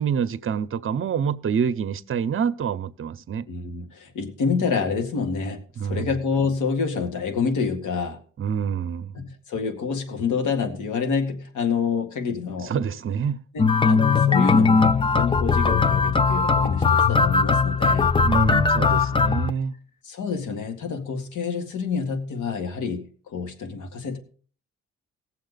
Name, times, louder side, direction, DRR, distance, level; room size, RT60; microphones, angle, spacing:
voice 1, 0.0-3.4 5.8-6.2 8.4-9.1 12.6-13.4 18.2-19.7, right 7 dB, 45° right, 0.8 m, -26 dB
voice 2, 3.5-8.2 9.1-12.7 13.5-18.1 20.0-24.2, left 5 dB, 80° left, 2.1 m, -28 dB
sound 1, 13.6-19.5, left 5 dB, 15° left, 0.5 m, -19 dB
18.5 x 7.4 x 4.0 m
cardioid pair, 90°, 30 cm